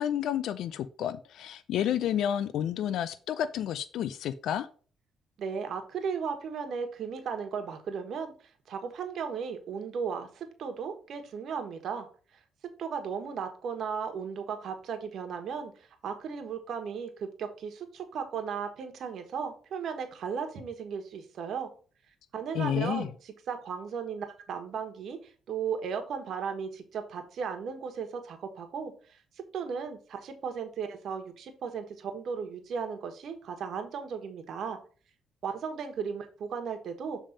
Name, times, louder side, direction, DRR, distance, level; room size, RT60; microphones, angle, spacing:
voice 1, 0.0-4.7 22.5-23.1, left 10 dB, 80° left, 13 dB, 0.4 m, -30 dB
voice 2, 5.4-8.3 8.7-12.1 12.8-21.7 22.3-25.2 25.5-29.2 29.5-34.8 35.4-37.2, right 6 dB, 65° right, 6 dB, 1.3 m, -36 dB
7.2 x 3.5 x 5.0 m, 0.39 s
cardioid pair, 90°, 0 cm